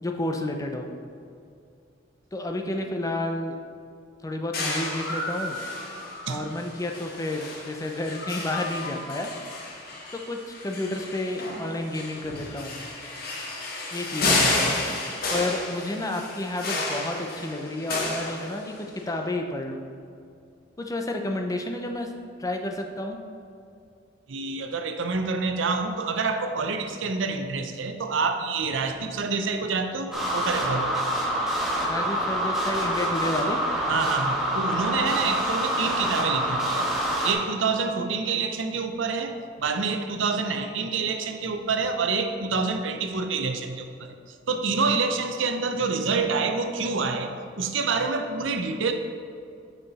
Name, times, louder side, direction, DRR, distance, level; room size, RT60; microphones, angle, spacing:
voice 1, 0.0-0.9 2.3-3.6 4.2-5.6 6.3-9.3 10.1-12.8 13.9-14.8 15.3-19.8 20.8-22.1 22.4-23.2 31.9-33.6, left 1 dB, 20° left, 4 dB, 0.5 m, -31 dB
sound 1, 4.5-19.0, left 2 dB, 50° left, 1.1 m, -31 dB
voice 2, 24.3-31.0 33.9-36.9 37.2-44.1 44.5-48.9, right 4 dB, 75° right, 7 dB, 0.6 m, -27 dB
sound 2, 30.1-37.3, right 1 dB, ahead, 1.4 m, -26 dB
6.8 x 5.7 x 4.1 m, 2.4 s
head